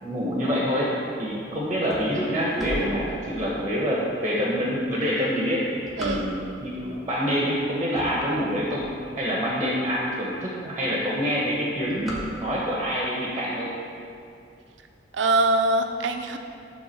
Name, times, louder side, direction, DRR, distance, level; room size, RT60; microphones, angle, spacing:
voice 1, 0.0-0.9 1.2-5.7 6.0-13.7, equal, 20° right, -4 dB, 1.0 m, -26 dB
sound 1, 1.8-3.7 4.2-4.3 5.0-6.7 7.3-7.6 7.8-9.4 9.9-10.0 10.2-10.3 10.6-11.0 11.2-12.8, equal, ahead, 1.2 m, -37 dB
voice 2, 6.0-6.3 15.1-16.4, right 2 dB, 90° right, 6 dB, 0.5 m, -23 dB
7.1 x 3.6 x 6.3 m, 2.5 s
head